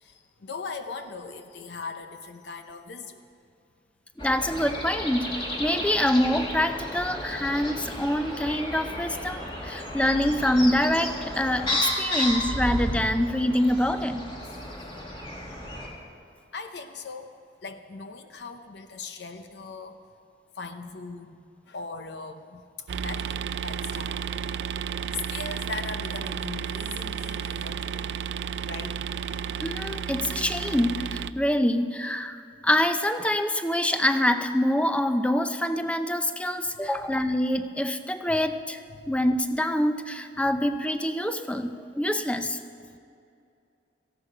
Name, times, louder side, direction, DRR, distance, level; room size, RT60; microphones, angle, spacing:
voice 1, 0.0-3.2 14.4-14.6 16.5-17.3 17.6-20.0 20.6-21.4 21.7-22.6 23.0-24.2 25.3-28.0 28.7-29.0 36.8-37.1 38.3-38.4 38.9-39.2, left 3 dB, 70° left, 7 dB, 0.7 m, -39 dB
sound 1, 4.2-15.9, left 1 dB, 30° left, 2.4 m, -32 dB
voice 2, 4.2-5.3 5.6-14.3 29.6-32.4 32.6-38.8 39.1-42.6, left 1 dB, 5° left, 9 dB, 0.6 m, -25 dB
sound 2, 22.9-31.3, right 7 dB, 80° right, 0.4 m, -32 dB
17.5 x 14.5 x 4.9 m, 2.5 s
head